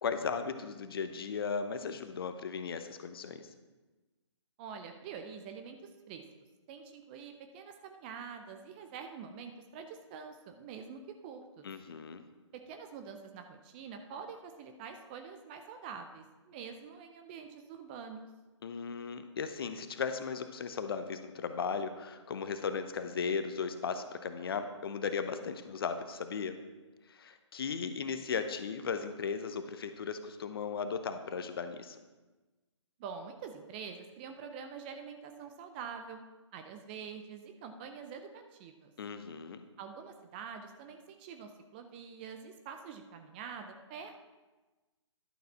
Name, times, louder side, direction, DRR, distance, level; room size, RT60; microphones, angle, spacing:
voice 1, 0.0-3.4 11.6-12.2 18.6-26.6 27.1-32.0 39.0-39.6, left 5 dB, 50° left, 9 dB, 0.8 m, -36 dB
voice 2, 4.6-6.2 6.7-11.6 12.5-18.3 33.0-36.2 36.5-38.9 39.8-44.2, right 6 dB, 20° right, 6 dB, 0.5 m, -46 dB
11.5 x 6.6 x 4.1 m, 1.2 s
figure-of-eight pair, 140°, 16 cm